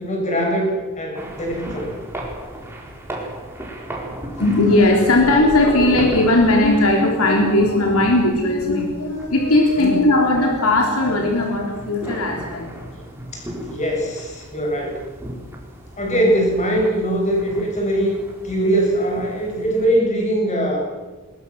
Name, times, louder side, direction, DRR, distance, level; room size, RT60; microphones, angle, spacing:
voice 1, 0.0-2.0 9.8-9.9 13.3-15.0 16.0-18.2 18.4-20.8, right 1 dB, 35° left, 0 dB, 7.6 m, -21 dB
sound 1, 1.1-20.0, right 1 dB, 10° right, 4.3 m, -36 dB
voice 2, 4.4-12.8, left 2 dB, 70° left, 1 dB, 3.8 m, -17 dB
21.5 x 21.0 x 7.6 m, 1.2 s
head